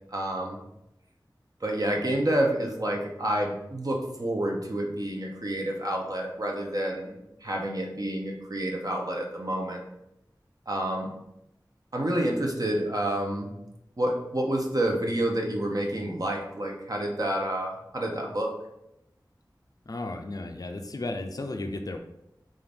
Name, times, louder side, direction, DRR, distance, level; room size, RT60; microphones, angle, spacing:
voice 1, 0.1-0.6 1.6-9.8 10.7-11.1 11.9-13.5 14.0-18.5, right 1 dB, 55° right, 0 dB, 0.7 m, -29 dB
voice 2, 19.9-22.0, left 2 dB, 50° left, 5 dB, 0.4 m, -34 dB
3.7 x 2.5 x 3.4 m, 0.86 s
wide cardioid pair, 40°, 8 cm